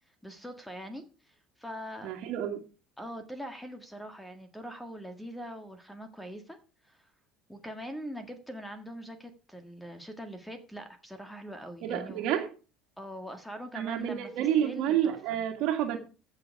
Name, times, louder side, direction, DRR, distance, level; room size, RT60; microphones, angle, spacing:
voice 1, 0.2-2.1 3.0-6.6 6.9-7.0 7.5-12.2 13.0-15.4, equal, 5° left, 7 dB, 1.7 m, -42 dB
voice 2, 2.0-2.6 11.8-12.5 13.7-16.0, right 10 dB, 65° right, 4 dB, 1.9 m, -29 dB
14.5 x 6.7 x 4.7 m, 0.34 s
cardioid pair, 125°, 0 cm